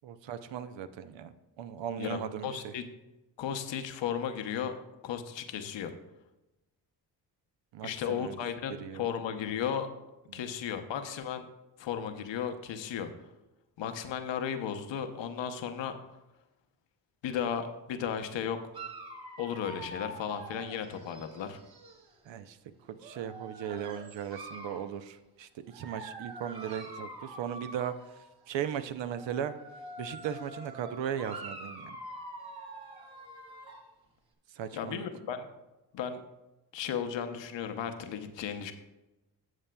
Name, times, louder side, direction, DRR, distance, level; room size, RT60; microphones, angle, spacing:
voice 1, 0.0-2.7 7.7-8.4 8.8-9.1 10.3-10.4 22.2-22.6 22.8-29.5 30.0-32.0 34.5-35.0, right 9 dB, 70° right, 11 dB, 0.7 m, -37 dB
voice 2, 2.4-2.8 3.4-4.7 5.0-5.9 7.8-9.9 10.3-11.5 11.8-13.1 13.8-15.9 17.2-18.6 19.4-21.6 34.7-35.5 35.9-36.2 36.7-38.7, left 8 dB, 70° left, 7 dB, 0.9 m, -35 dB
Dog, 18.7-22.1 23.0-24.9 25.7-28.3 29.0-33.9, right 1 dB, 50° right, 1.9 m, -45 dB
12.5 x 7.4 x 2.3 m, 1.0 s
supercardioid pair, 45°, 46 cm